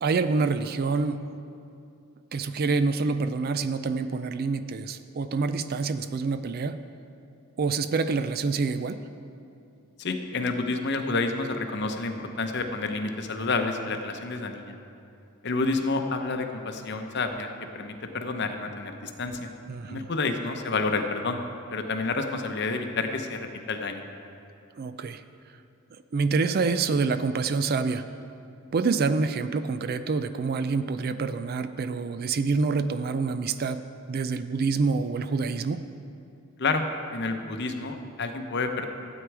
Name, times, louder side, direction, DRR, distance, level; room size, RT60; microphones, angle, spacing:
voice 1, 0.0-1.3 2.3-6.8 7.6-9.0 19.7-20.1 24.8-25.2 26.1-28.0 28.7-33.8 34.1-35.8, right 4 dB, 45° right, 12 dB, 0.3 m, -27 dB
voice 2, 10.0-14.7 15.4-19.5 19.9-21.4 21.7-24.0 36.6-38.8, left 3 dB, 50° left, 6 dB, 0.8 m, -29 dB
12.5 x 8.3 x 4.7 m, 2.6 s
head